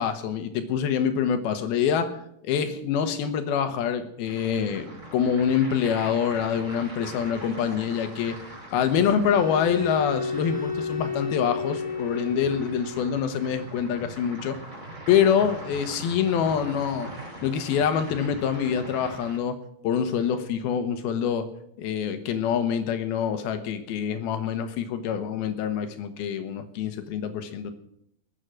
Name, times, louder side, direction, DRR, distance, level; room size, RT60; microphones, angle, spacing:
voice 1, 0.0-2.2 2.4-4.9 5.1-8.4 8.7-14.6 15.1-17.1 17.4-19.5 19.8-21.5 21.8-27.7, left 8 dB, 85° left, 9 dB, 3.1 m, -25 dB
sound 1, 4.2-19.4, right 1 dB, 20° right, 5.7 m, -42 dB
sound 2, 9.2-13.2, left 5 dB, 15° left, 1.8 m, -31 dB
21.0 x 8.4 x 6.3 m, 0.73 s
omnidirectional pair, 4.3 m